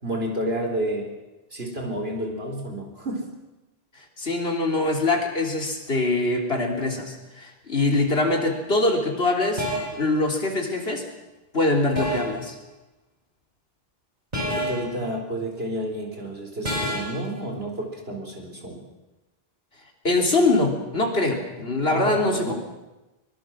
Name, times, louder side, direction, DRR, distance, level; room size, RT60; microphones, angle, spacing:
voice 1, 0.0-1.1 1.5-3.3 14.4-18.9 21.9-22.5, right 1 dB, 75° right, 2 dB, 4.4 m, -30 dB
voice 2, 4.0-9.6 10.0-11.0 11.5-12.6 20.0-22.5, left 2 dB, 75° left, 2 dB, 3.7 m, -23 dB
sound 1, 8.3-8.6 9.6-10.1 12.0-12.5 14.3-15.0 16.6-17.2, equal, 45° right, 5.5 m, -28 dB
23.5 x 22.0 x 6.4 m, 1.0 s
omnidirectional pair, 1.0 m